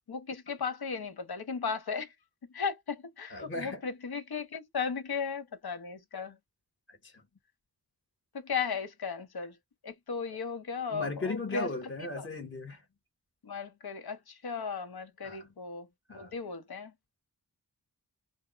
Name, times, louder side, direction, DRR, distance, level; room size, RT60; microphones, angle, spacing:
voice 1, 0.1-2.1 2.5-6.4 8.3-9.6 9.8-12.3 13.4-16.9, left 5 dB, 65° left, 0.9 m, -36 dB
voice 2, 3.3-3.8 6.9-7.2 10.9-12.8 15.2-15.5 16.1-16.3, left 2 dB, 30° left, 1.1 m, -37 dB
3.5 x 2.2 x 3.8 m
wide cardioid pair, 80°, 40 cm